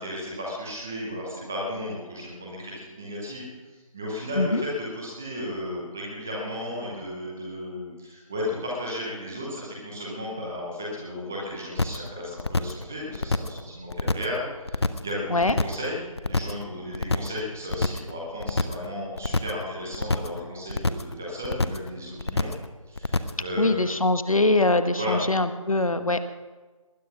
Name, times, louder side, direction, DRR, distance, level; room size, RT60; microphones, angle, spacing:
voice 1, 0.0-3.5 3.7-22.5 22.9-23.9 25.0-25.2, left 1 dB, 5° right, -4 dB, 0.6 m, -34 dB
sound 1, 11.8-12.1 12.4-12.8 13.1-13.6 13.9-14.4 14.7-15.1 15.4-15.9 16.2-16.6 16.9-17.4 17.7-18.1 18.4-18.9 19.2-19.6 19.9-20.4 20.7-21.1 21.4-21.9 22.2-22.7 23.0-23.4, left 3 dB, 50° left, 0.9 m, -26 dB
voice 2, 23.6-26.2, left 2 dB, 75° left, 11 dB, 1.4 m, -22 dB
19.5 x 10.5 x 6.0 m, 1.3 s
figure-of-eight pair, 165°, 18 cm